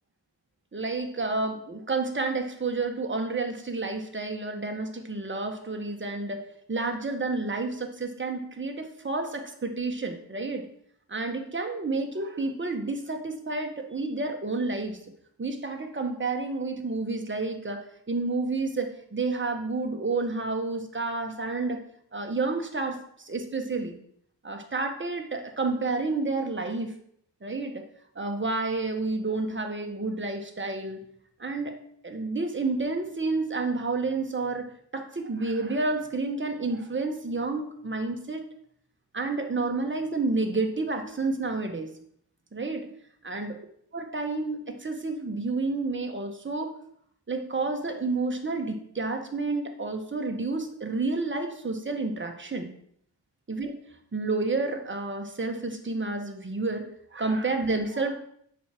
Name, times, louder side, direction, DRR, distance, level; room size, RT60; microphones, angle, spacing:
voice 1, 0.7-6.4 6.7-10.7 11.1-15.0 15.4-21.8 22.1-23.9 24.4-27.0 27.4-27.9 28.1-31.0 31.4-31.8 32.0-38.4 39.1-41.9 42.5-42.9 43.2-43.5 43.9-46.7 47.3-52.7 53.5-53.8 54.1-58.2, right 3 dB, 25° right, 4 dB, 1.2 m, -30 dB
8.2 x 6.2 x 4.4 m, 0.67 s
wide cardioid pair, 95°, 43 cm